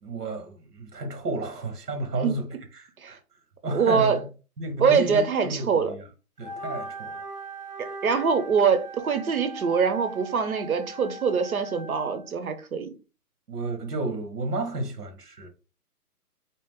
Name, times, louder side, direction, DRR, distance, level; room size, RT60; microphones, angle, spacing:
voice 1, 0.0-2.5 2.7-3.2 3.6-4.2 4.6-6.0 6.4-7.2 13.5-15.5, right 2 dB, 90° right, 1.4 m, -32 dB
voice 2, 3.7-4.2 4.8-5.9 7.8-12.9, right 6 dB, 65° right, 0.9 m, -24 dB
Wind instrument woodwind instrument, 6.4-12.3, right 2 dB, 20° right, 0.7 m, -40 dB
4.1 x 3.0 x 3.5 m
hypercardioid pair, 175°, 47 cm